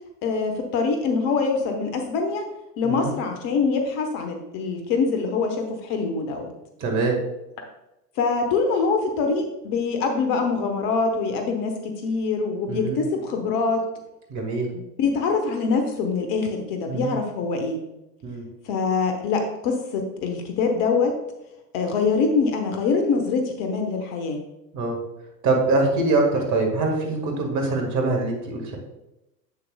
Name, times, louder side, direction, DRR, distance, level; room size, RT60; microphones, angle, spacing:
voice 1, 0.2-2.4 2.8-6.5 8.2-13.8 15.0-17.8 18.6-21.1 21.7-24.4, left 4 dB, 40° left, 4 dB, 1.1 m, -24 dB
voice 2, 6.8-7.1 12.7-13.0 14.3-14.7 16.9-17.1 18.2-18.4 24.7-25.0 25.4-28.8, right 3 dB, 35° right, 2 dB, 1.7 m, -23 dB
7.7 x 6.8 x 2.3 m, 0.91 s
figure-of-eight pair, 85°, 49 cm